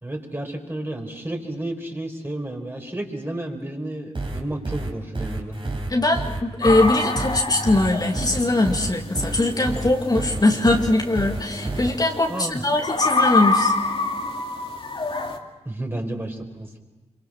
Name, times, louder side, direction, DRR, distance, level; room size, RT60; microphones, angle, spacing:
voice 1, 0.0-5.6 12.3-12.6 15.6-16.8, right 1 dB, 20° right, 3 dB, 4.5 m, -31 dB
sound 1, 4.1-11.9, right 2 dB, 45° right, 4.0 m, -29 dB
voice 2, 5.9-13.7, left 2 dB, 35° left, 1 dB, 2.3 m, -21 dB
sound 2, 6.6-15.4, left 3 dB, 50° left, 2.5 m, -27 dB
26.0 x 24.0 x 6.2 m, 1.2 s
cardioid pair, 55°, 12 cm